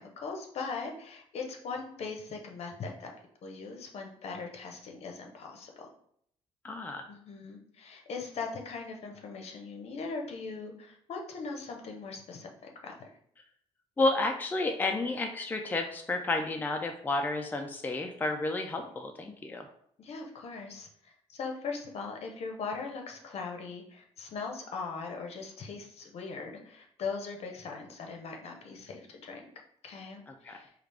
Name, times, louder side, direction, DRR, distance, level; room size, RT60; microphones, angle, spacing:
voice 1, 0.0-3.1 3.4-5.9 7.1-12.5 12.8-13.1 20.0-29.5 29.8-30.7, left 4 dB, 65° left, 2 dB, 0.7 m, -40 dB
voice 2, 6.6-7.0 14.0-19.7 30.4-30.6, left 2 dB, 15° left, 4 dB, 0.4 m, -31 dB
4.8 x 2.4 x 3.3 m, 0.68 s
cardioid pair, 120°, 11 cm